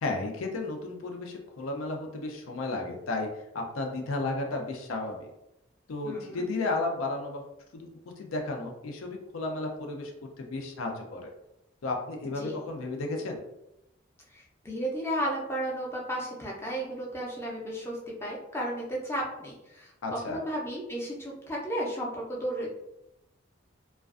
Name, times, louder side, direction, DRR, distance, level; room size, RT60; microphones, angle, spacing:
voice 1, 0.0-5.3 5.9-7.5 7.7-7.9 8.2-10.1 10.4-11.3 11.8-13.4 20.0-20.4, left 2 dB, 85° left, 2 dB, 0.5 m, -33 dB
voice 2, 6.0-6.4 12.4-12.5 14.3-22.7, right 1 dB, 10° left, -3 dB, 0.4 m, -34 dB
2.4 x 2.2 x 2.3 m, 0.88 s
head